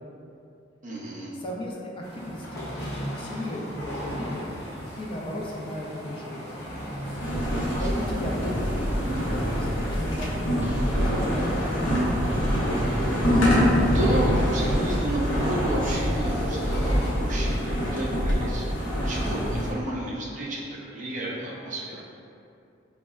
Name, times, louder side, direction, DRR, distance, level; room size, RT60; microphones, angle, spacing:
voice 1, 0.8-1.3 7.4-8.1 13.3-18.7 19.0-22.0, right 1 dB, 45° right, -4 dB, 0.5 m, -31 dB
voice 2, 1.4-2.7 3.2-4.5 5.0-6.5 7.7-8.9 9.2-10.6 11.0-12.0 12.3-12.7, left 1 dB, 30° left, -3 dB, 0.4 m, -35 dB
sound 1, 2.0-17.1, equal, 55° left, 0.9 m, -36 dB
Mechanisms, 7.0-16.5, equal, 10° right, 1.0 m, -43 dB
sound 2, 7.2-19.7, equal, 85° left, 0.7 m, -25 dB
5.1 x 2.1 x 2.2 m, 2.5 s
head